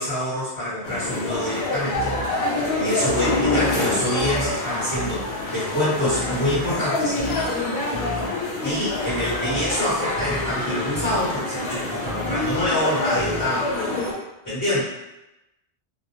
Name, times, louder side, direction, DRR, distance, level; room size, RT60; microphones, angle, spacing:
voice 1, 0.0-2.2 2.5-7.1 8.6-13.7 14.4-14.8, left 1 dB, 20° left, -13 dB, 0.9 m, -26 dB
sound 1, 0.8-14.1, left 2 dB, 80° left, 0.8 m, -26 dB
sound 2, 1.9-2.3 3.0-3.8 4.2-4.5 4.9-5.3 6.0-6.8 7.2-7.5 7.9-8.3 9.1-9.7 10.2-10.5 10.9-11.2 12.0-12.7 13.2-13.5, right 2 dB, 75° right, 0.8 m, -33 dB
2.2 x 2.1 x 2.7 m, 0.94 s
omnidirectional pair, 1.0 m